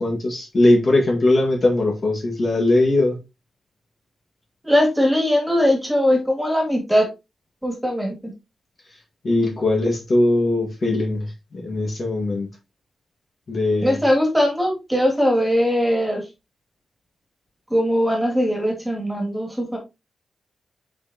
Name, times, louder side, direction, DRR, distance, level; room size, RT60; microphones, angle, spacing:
voice 1, 0.0-3.2 9.2-12.5 13.5-14.0, left 2 dB, 40° left, 1.8 m, -20 dB
voice 2, 4.6-7.1 7.6-8.3 13.8-16.2 17.7-19.8, equal, 5° right, 2.5 m, -20 dB
6.4 x 5.3 x 2.9 m
wide cardioid pair, 140°, 0 cm